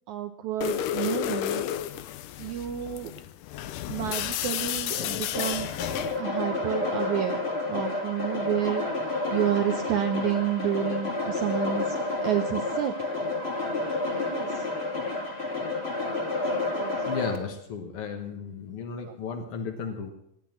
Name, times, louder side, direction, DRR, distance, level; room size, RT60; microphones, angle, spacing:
voice 1, 0.1-1.6 2.4-3.1 3.9-5.7 6.2-7.4 7.7-12.9 14.2-14.7 16.3-17.0 19.0-19.1, right 11 dB, 90° right, 7 dB, 1.7 m, -30 dB
sound 1, 0.6-6.2, left 11 dB, 75° left, 2.0 m, -32 dB
sound 2, 5.3-17.4, left 2 dB, 20° left, 1.8 m, -30 dB
voice 2, 17.0-20.1, left 5 dB, 60° left, 3 dB, 1.5 m, -34 dB
18.0 x 10.5 x 7.4 m, 0.77 s
omnidirectional pair, 4.5 m